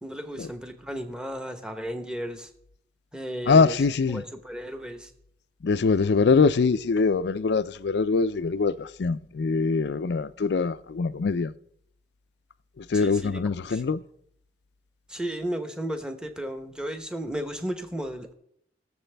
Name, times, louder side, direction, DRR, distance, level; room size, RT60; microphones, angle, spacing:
voice 1, 0.0-2.5 3.1-3.8 4.1-5.1 12.9-13.4 13.7-13.8 15.1-18.3, equal, 5° right, 0.9 m, -34 dB
voice 2, 3.5-4.2 5.6-11.5 12.8-14.0, left 4 dB, 65° left, 0.4 m, -23 dB
22.0 x 7.3 x 3.4 m
head